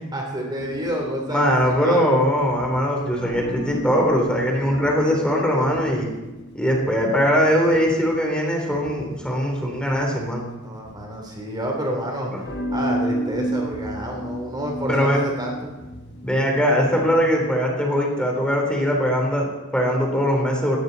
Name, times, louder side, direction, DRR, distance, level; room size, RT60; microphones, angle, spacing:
voice 1, 0.1-2.1 10.6-15.7, equal, 20° right, 0 dB, 3.2 m, -29 dB
sound 1, 0.6-11.8 12.4-17.4, right 1 dB, 55° left, 5.5 m, -33 dB
voice 2, 1.3-6.1 6.5-10.5 12.3-12.4 14.9-15.2 16.2-20.8, equal, 5° left, 0 dB, 3.2 m, -21 dB
19.0 x 17.0 x 4.1 m, 1.1 s
head